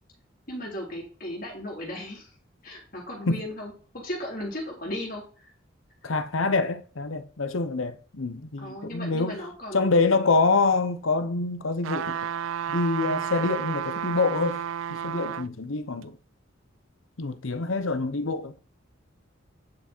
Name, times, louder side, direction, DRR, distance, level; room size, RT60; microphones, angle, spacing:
voice 1, 0.5-2.3 2.6-5.5 6.0-6.1 8.6-10.0, left 1 dB, 45° left, 3.9 m, -36 dB
voice 2, 6.0-9.4 9.7-12.2 12.7-14.6 14.9-16.2 17.2-18.6, left 3 dB, 85° left, 0.9 m, -26 dB
sound 1, 11.8-15.5 16.0-16.1, right 8 dB, 80° right, 0.4 m, -31 dB
9.8 x 6.4 x 4.5 m
head